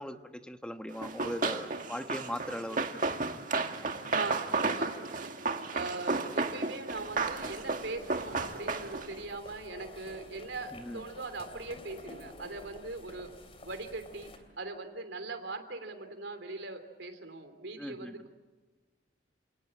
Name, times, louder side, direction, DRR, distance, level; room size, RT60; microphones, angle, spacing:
voice 1, 0.0-3.0 10.7-11.0 17.8-18.2, equal, 5° left, 7 dB, 1.2 m, -39 dB
Run, 1.0-9.2, right 3 dB, 45° right, 1.8 m, -33 dB
voice 2, 4.1-5.3 5.7-13.3 13.6-14.3 14.6-18.3, right 3 dB, 90° right, 7 dB, 3.2 m, -41 dB
sound 1, 6.9-14.4, left 1 dB, 30° left, 3.1 m, -50 dB
28.5 x 19.0 x 8.8 m, 1.3 s
head